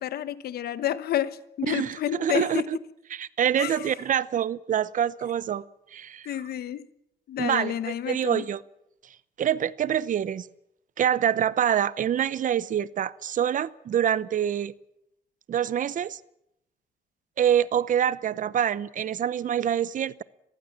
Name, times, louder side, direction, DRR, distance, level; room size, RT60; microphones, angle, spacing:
voice 1, 0.0-2.6 3.6-3.9 6.2-6.9 7.3-8.4, left 11 dB, 80° left, 1.2 m, -30 dB
voice 2, 1.7-2.8 3.1-5.6 5.9-6.3 7.4-8.6 9.4-10.5 11.0-14.7 15.5-16.2 17.4-20.2, right 9 dB, 55° right, 0.8 m, -26 dB
22.0 x 15.5 x 8.7 m
cardioid pair, 100°, 16 cm